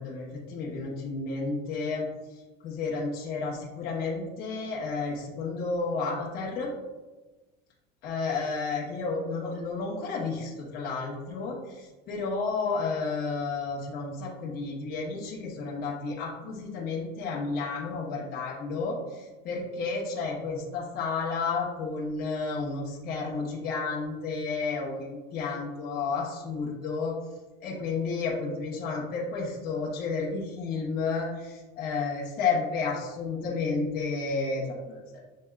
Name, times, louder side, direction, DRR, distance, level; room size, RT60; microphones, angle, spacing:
voice 1, 0.0-2.1 2.3-6.7 8.0-27.1 27.6-35.2, left 4 dB, 50° left, -5 dB, 1.0 m, -31 dB
7.5 x 2.8 x 2.3 m, 1.2 s
cardioid pair, 150°, 21 cm